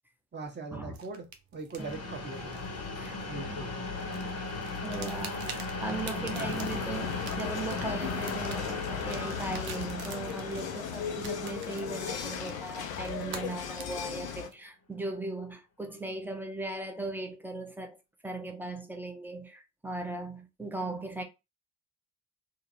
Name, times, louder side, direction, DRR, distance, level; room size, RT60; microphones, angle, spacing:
voice 1, 0.3-1.3 1.5-2.6 3.3-3.9 6.2-6.9, right 3 dB, 25° right, 1.1 m, -41 dB
sound 1, 0.9-3.6 4.0-14.5, right 6 dB, 80° right, 0.6 m, -47 dB
sound 2, 1.8-13.4, left 3 dB, 35° left, 0.9 m, -37 dB
voice 2, 1.8-2.1 3.0-3.2 3.5-3.7 4.8-18.0 18.2-21.2, right 2 dB, 5° right, 0.7 m, -38 dB
sound 3, 6.3-14.5, left 8 dB, 75° left, 0.6 m, -37 dB
3.7 x 2.0 x 2.7 m
figure-of-eight pair, 40°, 41 cm